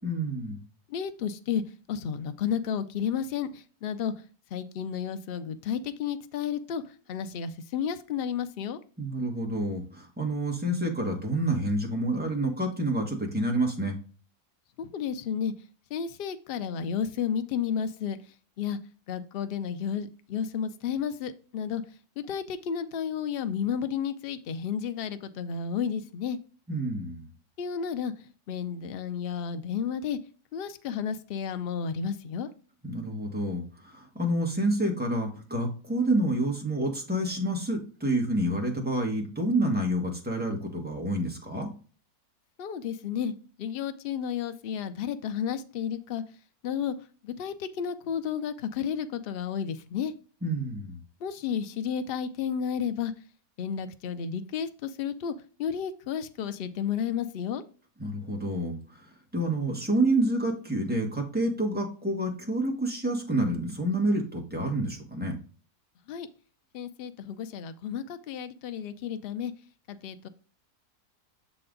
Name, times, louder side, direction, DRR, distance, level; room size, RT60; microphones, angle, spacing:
voice 1, 0.0-0.6 9.0-14.0 26.7-27.3 32.8-41.7 50.4-51.0 58.0-65.4, right 1 dB, 5° right, 1 dB, 1.2 m, -28 dB
voice 2, 0.9-1.6 1.9-4.1 4.5-8.8 14.8-15.5 15.9-18.2 18.6-18.8 19.1-21.8 22.2-26.4 27.6-30.2 30.5-32.5 42.6-46.2 46.6-46.9 47.2-50.1 51.2-53.1 53.6-55.3 55.6-57.6 66.1-66.3 66.7-69.5 69.9-70.3, left 7 dB, 90° left, 10 dB, 0.5 m, -32 dB
6.7 x 4.1 x 3.8 m, 0.37 s
omnidirectional pair, 1.7 m